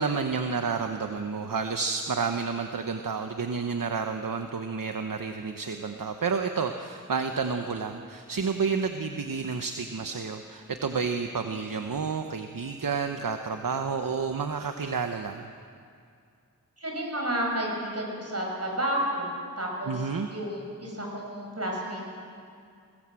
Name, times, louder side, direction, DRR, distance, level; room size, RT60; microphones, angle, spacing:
voice 1, 0.0-15.5 19.9-20.3, right 5 dB, 70° right, 6 dB, 1.0 m, -30 dB
voice 2, 16.8-19.3 19.6-22.2, right 1 dB, 45° right, -1 dB, 6.4 m, -31 dB
22.5 x 18.0 x 7.7 m, 2.3 s
wide cardioid pair, 60°, 35 cm